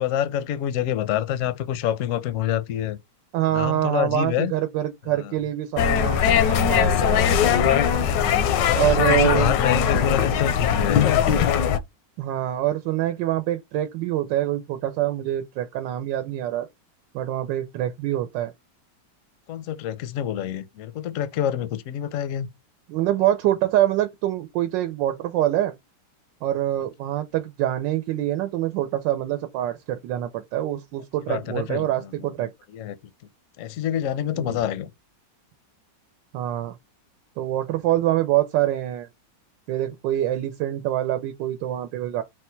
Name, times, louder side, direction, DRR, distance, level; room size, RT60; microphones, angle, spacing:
voice 1, 0.0-3.0 3.5-4.5 5.2-5.3 7.2-8.2 8.6-11.2 19.5-22.5 31.3-32.1 32.7-32.9 33.6-34.9, left 10 dB, 70° left, 0.7 m, -27 dB
voice 2, 3.3-7.2 8.8-9.6 12.2-16.7 17.1-18.5 22.9-25.7 26.4-32.5 34.3-34.6 36.3-36.8 37.4-39.1 39.7-42.2, right 13 dB, 85° right, 1.3 m, -25 dB
sound 1, 5.8-11.8, left 8 dB, 85° left, 1.3 m, -20 dB
4.1 x 2.2 x 4.3 m
omnidirectional pair, 1.9 m